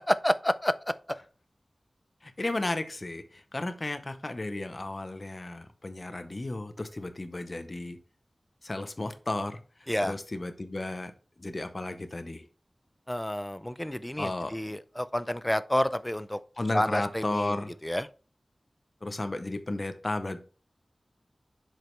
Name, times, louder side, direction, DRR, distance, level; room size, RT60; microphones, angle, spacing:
voice 1, 0.1-0.7 9.9-10.1 13.1-16.4 16.7-18.1, left 1 dB, 10° left, 0.4 m, -29 dB
voice 2, 2.2-8.0 8.6-9.6 10.0-11.1 11.4-12.5 14.2-14.5 16.6-17.7 19.0-20.4, left 2 dB, 40° left, 0.7 m, -33 dB
7.6 x 5.0 x 3.2 m
wide cardioid pair, 80°, 0 cm